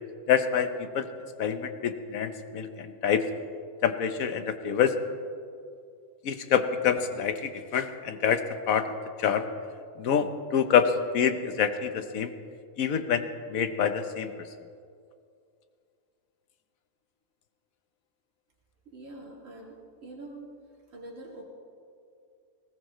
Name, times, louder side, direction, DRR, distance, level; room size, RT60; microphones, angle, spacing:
voice 1, 0.3-1.1 1.4-3.2 3.8-5.0 6.2-9.5 10.0-12.3 12.8-14.5, left 7 dB, 80° left, 9 dB, 1.3 m, -26 dB
voice 2, 18.9-20.4 20.9-21.4, right 2 dB, 65° right, -3 dB, 2.7 m, -44 dB
20.0 x 19.0 x 3.1 m, 2.4 s
omnidirectional pair, 1.4 m